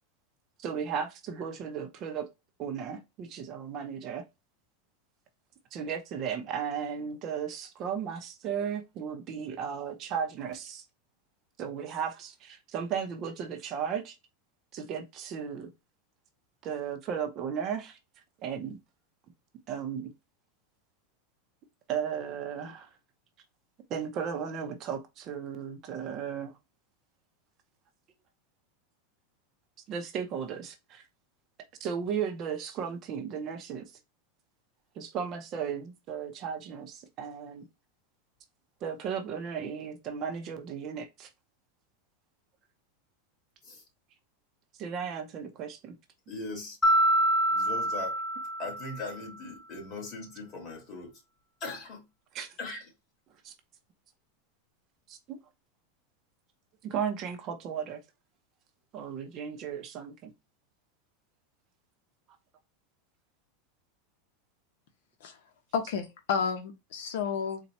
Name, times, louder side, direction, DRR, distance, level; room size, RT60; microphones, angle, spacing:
voice 1, 0.6-2.3 2.6-4.2 5.7-10.9 11.6-14.2 14.7-15.7 16.6-18.0 18.4-18.8 19.7-20.1 21.9-22.9 23.9-26.5 29.9-31.0 31.8-33.8 35.0-37.7 38.8-41.3 44.8-45.9 52.3-52.6 53.4-53.5 55.1-55.4 56.8-58.0 58.9-60.3, right 7 dB, 30° right, 0.6 m, -35 dB
voice 2, 46.3-46.8 47.5-48.2 48.6-51.2 51.6-52.0 52.6-52.8, left 3 dB, 30° left, 1.8 m, -39 dB
Mallet percussion, 46.8-49.2, right 1 dB, 15° left, 0.6 m, -26 dB
voice 3, 65.7-67.6, left 6 dB, 70° left, 0.9 m, -31 dB
4.1 x 2.3 x 4.1 m
supercardioid pair, 165°, 0 cm